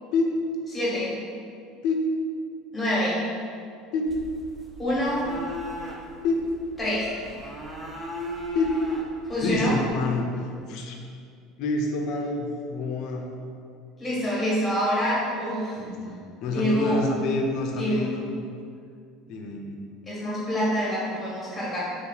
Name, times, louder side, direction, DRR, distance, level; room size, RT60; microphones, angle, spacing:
voice 1, 0.7-1.1 2.7-3.2 4.8-5.2 6.8-7.1 9.3-9.7 14.0-15.8 16.5-17.0 17.8-18.2 20.1-21.8, equal, 10° left, -7 dB, 1.4 m, -26 dB
sound 1, 4.1-10.1, left 1 dB, 15° right, 0.5 m, -37 dB
voice 2, 9.4-11.0 11.6-13.3 15.8-18.3 19.3-19.7, left 2 dB, 60° left, 2 dB, 0.5 m, -27 dB
3.1 x 2.9 x 3.9 m, 2.3 s
cardioid pair, 135°, 0 cm